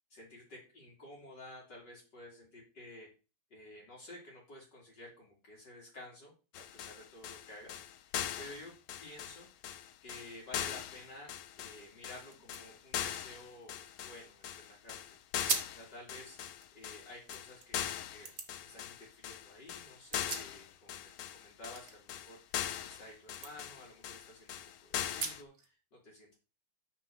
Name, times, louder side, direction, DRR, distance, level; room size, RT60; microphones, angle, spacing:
voice 1, 0.1-3.1 3.5-8.1 8.4-8.7 9.0-9.5 10.0-11.3 11.6-15.2 15.7-16.4 16.7-18.3 18.6-26.4, left 1 dB, 60° left, -3 dB, 3.4 m, -52 dB
sound 1, 6.5-25.4, left 10 dB, 85° left, 1.6 m, -41 dB
sound 2, 11.9-12.0 12.3-14.5 14.9-15.0 15.4-15.8 16.3-17.7 18.2-18.5 19.8-21.0 21.2-23.0 23.3-23.5 24.0-24.1 25.0-25.7, right 5 dB, 40° right, 1.5 m, -42 dB
6.5 x 5.4 x 6.9 m, 0.33 s
omnidirectional pair, 2.2 m